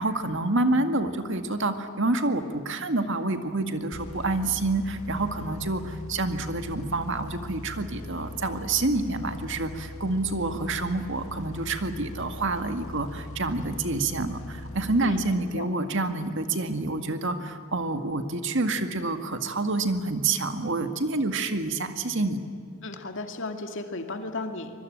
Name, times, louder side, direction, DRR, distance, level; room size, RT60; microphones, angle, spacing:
voice 1, 0.0-22.4, right 2 dB, 60° right, 7 dB, 1.9 m, -28 dB
sound 1, 3.9-15.6, left 1 dB, 85° left, 1.8 m, -41 dB
voice 2, 22.8-24.7, left 2 dB, 65° left, 5 dB, 2.4 m, -34 dB
24.5 x 22.5 x 8.8 m, 2.3 s
head